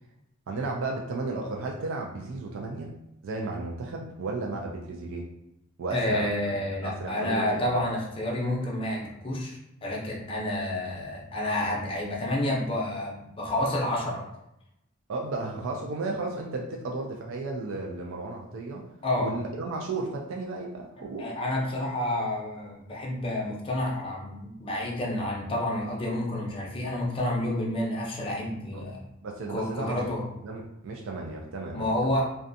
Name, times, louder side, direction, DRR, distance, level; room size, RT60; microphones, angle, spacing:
voice 1, 0.5-2.9 3.2-5.3 5.8-7.7 15.1-18.8 19.2-21.3 28.7-28.9 29.2-30.0 30.4-32.2, right 3 dB, 65° right, 0 dB, 0.4 m, -34 dB
voice 2, 5.9-14.2 19.0-19.4 21.2-29.0 29.5-30.2 31.7-32.2, left 1 dB, 25° left, -2 dB, 0.5 m, -29 dB
2.5 x 2.2 x 2.5 m, 0.83 s
head